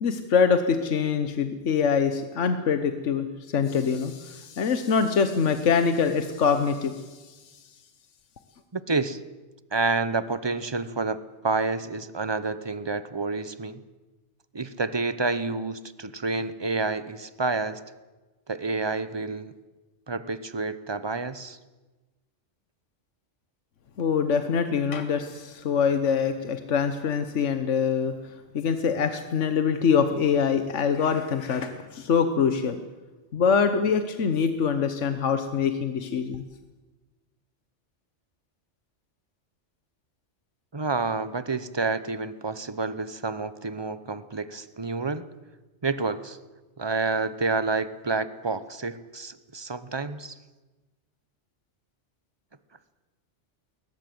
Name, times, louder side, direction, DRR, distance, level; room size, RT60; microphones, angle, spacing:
voice 1, 0.0-3.3 3.5-7.4 24.0-28.1 28.5-32.8 33.3-36.4, left 6 dB, 80° left, 9 dB, 1.4 m, -24 dB
voice 2, 8.7-9.2 9.7-13.8 14.5-17.8 18.5-19.5 20.1-21.6 40.7-45.3 45.8-46.4 46.8-50.4, right 3 dB, 25° right, 14 dB, 0.9 m, -29 dB
21.0 x 20.0 x 7.8 m, 1.2 s
omnidirectional pair, 1.2 m